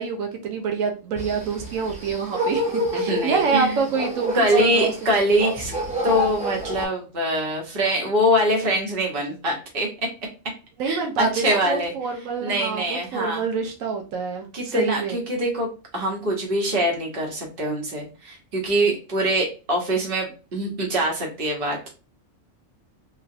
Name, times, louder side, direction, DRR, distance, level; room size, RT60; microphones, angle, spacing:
voice 1, 0.0-4.3 4.6-4.9 10.8-15.2, right 5 dB, 85° right, 3 dB, 1.1 m, -26 dB
sound 1, 1.2-6.9, equal, 5° right, 0.8 m, -28 dB
voice 2, 2.9-3.8 4.3-5.7 6.0-9.9 10.8-11.9 12.4-13.4 14.5-21.9, equal, 45° right, 0 dB, 1.3 m, -24 dB
3.9 x 2.4 x 2.6 m, 0.33 s
omnidirectional pair, 1.3 m